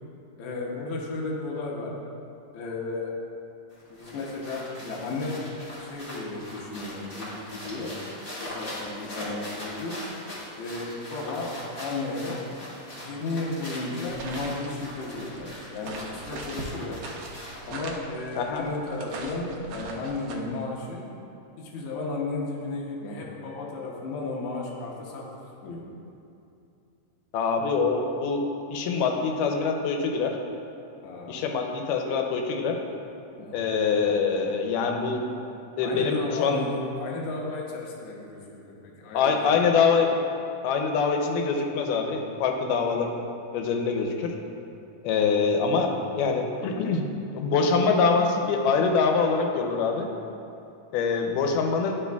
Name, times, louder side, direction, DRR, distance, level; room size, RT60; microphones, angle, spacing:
voice 1, 0.4-2.0 2.5-3.2 3.9-5.5 5.8-8.0 8.4-10.0 10.6-12.5 12.9-17.0 17.7-21.1 21.6-25.3 25.6-25.8 31.0-31.4 33.4-33.6 35.8-39.7, left 3 dB, 75° left, -3 dB, 2.0 m, -34 dB
sound 1, 3.7-17.8, left 1 dB, 50° left, 0.6 m, -41 dB
sound 2, 14.1-20.4, right 3 dB, 80° right, 1.5 m, -41 dB
voice 2, 27.3-30.4 31.3-32.8 33.5-35.3 35.8-36.6 39.1-40.1 40.6-43.1 43.5-44.4 45.0-45.9 46.2-47.1 47.3-50.1 50.9-52.0, left 5 dB, 90° left, 3 dB, 2.2 m, -24 dB
11.0 x 4.8 x 2.3 m, 2.7 s
omnidirectional pair, 3.7 m